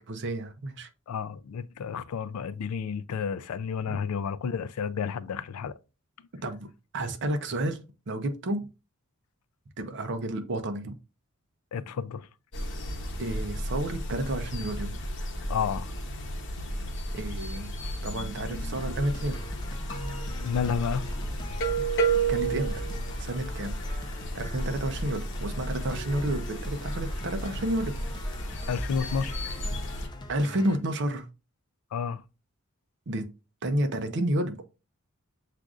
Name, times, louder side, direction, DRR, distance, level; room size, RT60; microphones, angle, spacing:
voice 1, 0.1-0.9 3.9-4.0 6.4-6.7 6.9-8.7 9.8-10.9 13.2-15.0 17.1-17.7 18.0-19.4 22.3-22.9 23.2-23.8 24.3-27.9 29.7-29.9 30.3-31.3 33.1-33.3 33.6-34.6, right 1 dB, 55° right, 0.6 m, -31 dB
voice 2, 1.1-5.7 11.7-12.3 15.5-15.9 17.8-17.9 20.4-21.1 28.7-29.5 31.9-32.2, left 6 dB, 85° left, 0.4 m, -31 dB
sound 1, 12.5-30.1, right 2 dB, 60° left, 0.8 m, -32 dB
sound 2, 18.8-30.8, left 1 dB, 20° left, 0.5 m, -44 dB
7.4 x 2.5 x 2.4 m
head